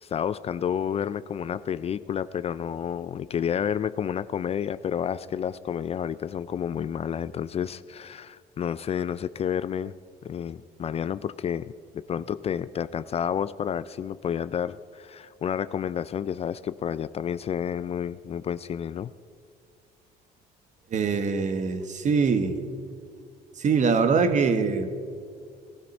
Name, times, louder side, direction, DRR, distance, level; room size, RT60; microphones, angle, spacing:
voice 1, 0.0-9.9 10.2-19.1, left 8 dB, 35° left, 16 dB, 0.4 m, -30 dB
voice 2, 20.9-22.6 23.6-24.9, right 5 dB, 45° right, 9 dB, 1.3 m, -23 dB
18.5 x 13.0 x 5.3 m, 2.1 s
cardioid pair, 110°, 17 cm